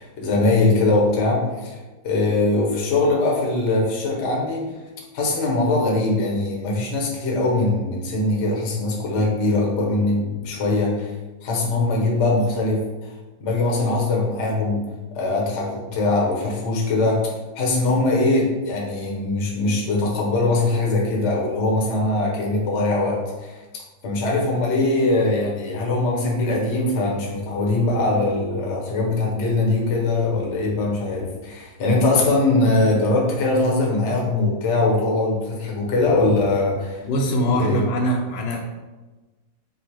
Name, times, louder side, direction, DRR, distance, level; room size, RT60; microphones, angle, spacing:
voice 1, 0.0-1.8 2.0-4.6 5.1-11.1 11.4-12.8 13.4-14.8 15.1-23.5 24.0-37.0 37.5-37.8, left 2 dB, 50° left, -2 dB, 0.9 m, -21 dB
voice 2, 37.0-38.6, equal, 80° left, 1 dB, 1.3 m, -22 dB
4.0 x 2.1 x 4.5 m, 1.2 s
omnidirectional pair, 2.1 m